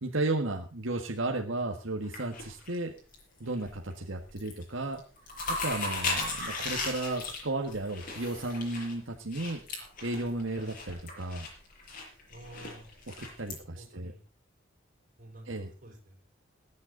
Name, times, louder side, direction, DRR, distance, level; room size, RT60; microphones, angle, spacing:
voice 1, 0.0-2.9 3.4-5.0 5.6-9.6 10.0-11.5 13.1-14.1 15.5-15.7, right 2 dB, 75° right, 2 dB, 1.6 m, -34 dB
sound 1, 2.0-3.2 3.5-3.9 4.2-4.6 4.9-13.5, left 3 dB, 45° left, 6.5 m, -37 dB
voice 2, 12.3-12.9 13.6-14.2 15.2-16.2, right 1 dB, 40° right, 3 dB, 4.9 m, -50 dB
21.0 x 9.6 x 3.9 m, 0.34 s
head